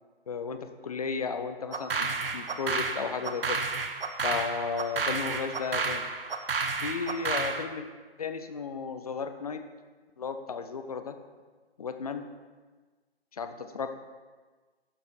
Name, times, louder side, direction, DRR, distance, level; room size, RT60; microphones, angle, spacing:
voice 1, 0.3-3.6 4.2-6.1 6.8-7.9 8.2-9.6 10.2-11.1 11.8-12.3 13.3-13.9, left 5 dB, 35° left, 8 dB, 0.5 m, -34 dB
sound 1, 1.7-7.6, right 4 dB, 60° right, 0.8 m, -31 dB
7.2 x 6.9 x 4.5 m, 1.4 s
figure-of-eight pair, 135°, 31 cm